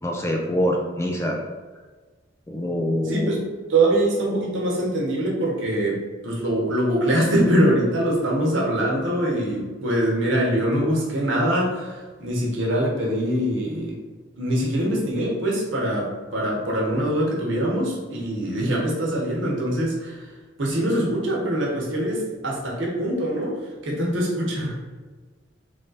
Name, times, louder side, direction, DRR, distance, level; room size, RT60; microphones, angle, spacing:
voice 1, 0.0-1.4 2.5-3.3, equal, 15° left, 1 dB, 0.3 m, -24 dB
voice 2, 3.1-14.0 14.4-20.3 20.6-23.6 23.8-24.8, right 1 dB, 70° right, -3 dB, 1.1 m, -23 dB
3.4 x 2.5 x 4.0 m, 1.4 s
head